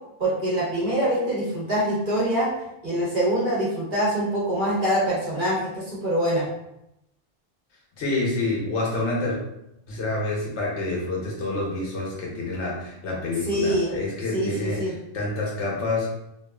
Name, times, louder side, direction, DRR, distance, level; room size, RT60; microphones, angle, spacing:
voice 1, 0.2-2.5 2.8-6.5 13.4-13.9 14.3-14.9, right 1 dB, 50° right, -7 dB, 1.2 m, -24 dB
voice 2, 8.0-9.4 9.9-16.1, left 2 dB, 85° left, -3 dB, 1.1 m, -28 dB
3.0 x 2.4 x 2.3 m, 0.83 s
omnidirectional pair, 1.1 m